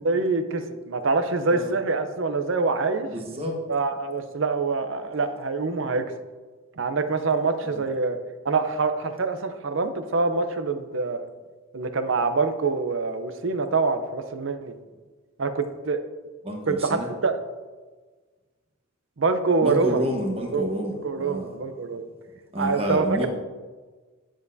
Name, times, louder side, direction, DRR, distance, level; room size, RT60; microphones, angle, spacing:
voice 1, 0.0-3.1 3.7-6.1 6.8-8.2 8.4-11.3 11.7-14.7 15.4-16.0 16.7-17.4 19.2-20.1 20.5-20.8 21.0-22.1 22.6-23.3, right 4 dB, 60° right, 9 dB, 0.6 m, -25 dB
voice 2, 3.1-3.6 7.6-7.8 16.4-17.1 19.6-20.9 21.2-21.5 22.5-23.3, equal, 25° right, 1 dB, 1.1 m, -29 dB
10.5 x 7.5 x 2.7 m, 1.4 s
head